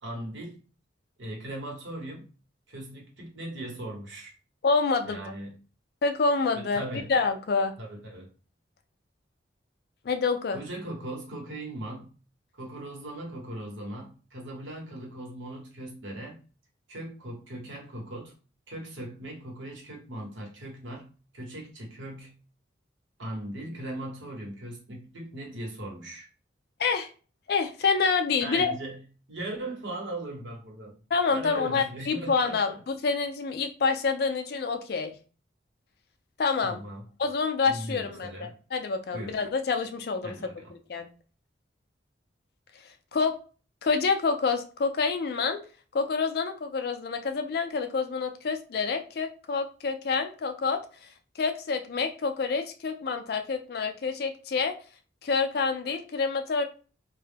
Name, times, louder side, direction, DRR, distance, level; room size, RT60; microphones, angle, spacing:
voice 1, 0.0-0.6 1.2-2.3 2.7-4.3 5.1-5.6 6.5-7.1 7.8-8.3 10.5-12.1 12.6-16.4 16.9-18.3 18.7-22.4 23.2-26.3 28.4-29.0 29.3-31.0 31.3-32.6 36.6-37.0 37.7-38.6 39.1-39.3 40.2-40.7, right 1 dB, 85° right, -1 dB, 1.0 m, -39 dB
voice 2, 4.6-5.3 6.0-6.8 7.1-7.7 10.0-10.6 26.8-27.1 27.5-28.7 31.1-35.1 36.4-36.8 37.2-40.3 40.9-41.1 43.1-43.4 43.8-45.6 45.9-51.1 51.4-54.7 55.2-56.6, left 4 dB, 55° left, 7 dB, 0.4 m, -27 dB
2.2 x 2.0 x 3.2 m, 0.37 s
head